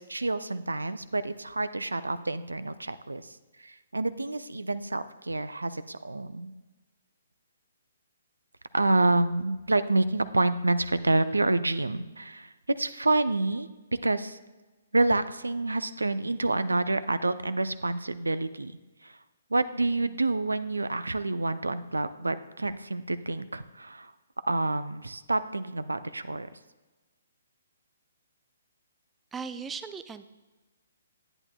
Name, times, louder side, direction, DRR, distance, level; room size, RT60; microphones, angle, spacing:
voice 1, 0.0-6.5 8.7-13.7 14.0-14.4 14.9-18.7 19.0-19.2 19.5-24.1 24.5-26.5, right 2 dB, 85° right, 14 dB, 0.4 m, -28 dB
voice 2, 29.3-30.3, right 5 dB, 10° right, 10 dB, 0.3 m, -37 dB
10.5 x 8.8 x 2.2 m, 1.2 s
figure-of-eight pair, 130°, 0 cm